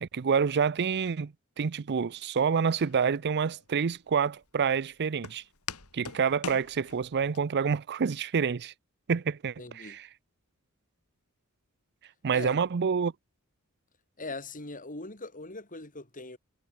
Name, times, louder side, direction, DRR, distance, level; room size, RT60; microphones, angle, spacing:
voice 1, 0.0-5.4 5.9-8.7 9.1-10.1 12.2-13.1, right 6 dB, 50° right, 0.5 m, -28 dB
Walk footsteps, 2.8-7.4, left 6 dB, 80° left, 4.2 m, -44 dB
voice 2, 9.6-10.0 12.3-12.6 14.2-16.4, left 3 dB, 40° left, 6.9 m, -40 dB
head